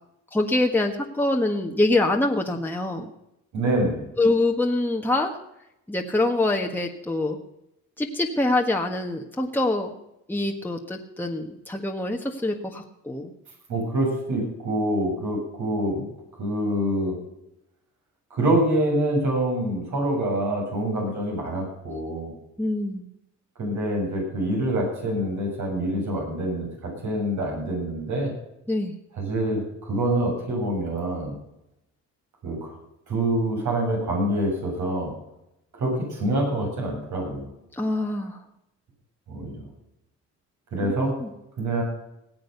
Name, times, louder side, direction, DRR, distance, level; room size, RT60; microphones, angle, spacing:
voice 1, 0.3-3.1 4.2-5.3 5.9-7.4 8.0-9.9 10.3-13.3 22.6-23.1 28.7-28.9 37.7-38.4 41.0-41.3, left 2 dB, 5° left, 1 dB, 1.5 m, -25 dB
voice 2, 3.5-4.0 13.7-16.0 16.4-17.1 18.3-22.3 23.6-28.3 29.1-31.4 32.4-32.7 33.1-35.1 35.7-37.5 39.3-39.6 40.7-41.1 41.6-41.8, right 1 dB, 70° right, -1 dB, 7.5 m, -26 dB
18.5 x 7.9 x 6.8 m, 0.85 s
cardioid pair, 90°, 30 cm